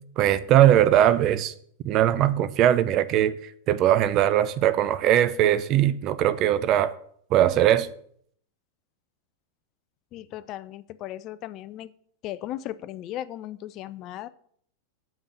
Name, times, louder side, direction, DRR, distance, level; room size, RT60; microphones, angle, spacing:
voice 1, 0.2-1.5 1.8-3.3 3.7-6.9 7.3-7.9, right 11 dB, 35° right, 0.5 m, -20 dB
voice 2, 10.1-11.9 12.2-14.3, left 13 dB, 35° left, 0.4 m, -36 dB
7.2 x 5.3 x 6.6 m
figure-of-eight pair, 90°, 0 cm